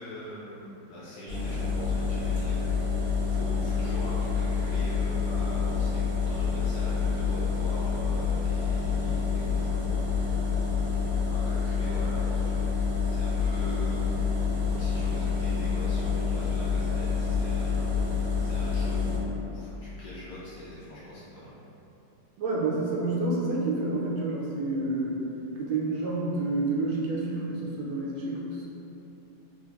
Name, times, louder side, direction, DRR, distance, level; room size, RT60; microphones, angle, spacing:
voice 1, 0.0-10.3 11.3-12.8 13.1-14.1 14.7-21.5, equal, 65° left, -9 dB, 1.1 m, -42 dB
sound 1, 1.3-19.2, left 5 dB, 55° right, 1.1 m, -27 dB
voice 2, 22.4-25.2 25.5-28.7, right 2 dB, 90° right, -4 dB, 1.5 m, -29 dB
3.4 x 2.5 x 2.9 m, 2.9 s
omnidirectional pair, 2.2 m